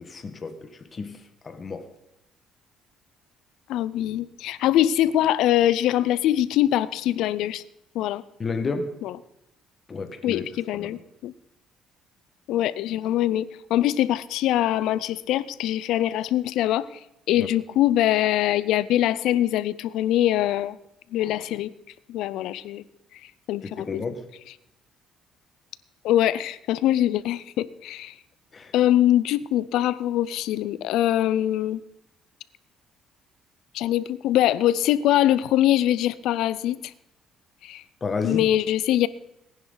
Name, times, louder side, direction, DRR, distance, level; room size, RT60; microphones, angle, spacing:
voice 1, 0.0-1.9 8.4-9.0 9.9-10.4 10.7-11.0 17.4-17.5 23.6-24.2 28.5-28.7 38.0-38.5, left 4 dB, 35° left, 8 dB, 1.6 m, -32 dB
voice 2, 3.7-7.6 7.9-8.2 9.0-9.1 10.2-11.3 12.5-16.9 17.3-20.8 21.1-21.7 22.1-22.8 23.5-24.0 26.0-28.1 28.7-31.8 33.7-36.9 37.6-37.8 38.2-39.1, left 13 dB, 80° left, 17 dB, 0.6 m, -23 dB
18.5 x 10.5 x 4.0 m, 0.87 s
cardioid pair, 100°, 0 cm